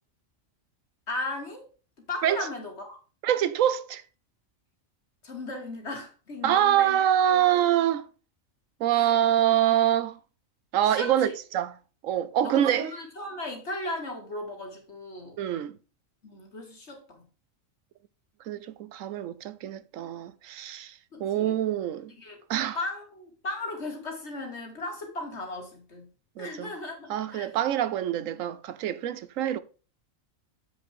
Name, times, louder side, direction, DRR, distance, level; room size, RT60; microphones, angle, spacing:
voice 1, 1.1-1.7 2.1-3.0 5.2-7.8 8.9-9.2 10.8-11.3 12.4-15.4 16.2-17.2 21.1-21.5 22.2-22.4 22.8-26.1 26.4-27.5, left 2 dB, 55° left, 2.4 m, -37 dB
voice 2, 3.2-4.0 6.4-8.1 8.8-10.2 10.7-11.7 12.0-12.9 15.4-15.8 18.5-22.1 22.5-22.8 26.4-26.7 27.1-29.6, right 11 dB, 80° right, 1.0 m, -25 dB
8.0 x 4.9 x 4.4 m
omnidirectional pair, 1.4 m